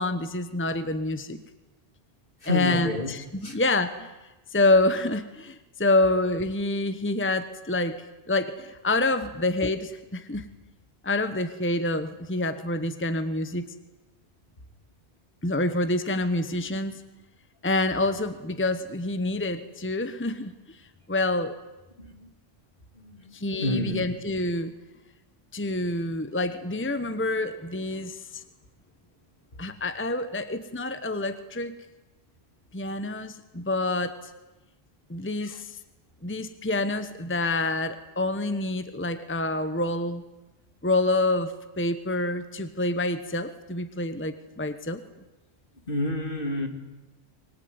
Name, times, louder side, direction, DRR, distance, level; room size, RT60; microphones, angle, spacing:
voice 1, 0.0-1.4 2.5-4.1 4.5-8.0 8.3-10.4 11.0-13.7 15.4-17.0 17.6-20.8 21.1-21.6 23.3-24.7 25.5-28.4 29.6-31.7 32.7-34.1 35.1-35.8 36.2-40.2 40.8-45.0, left 2 dB, 10° left, 11 dB, 1.1 m, -27 dB
voice 2, 2.4-3.1 3.4-3.6 22.0-22.3 23.0-24.0 35.4-35.6 45.9-46.7, left 2 dB, 55° left, 5 dB, 3.1 m, -29 dB
24.5 x 20.5 x 9.7 m, 1.1 s
omnidirectional pair, 1.1 m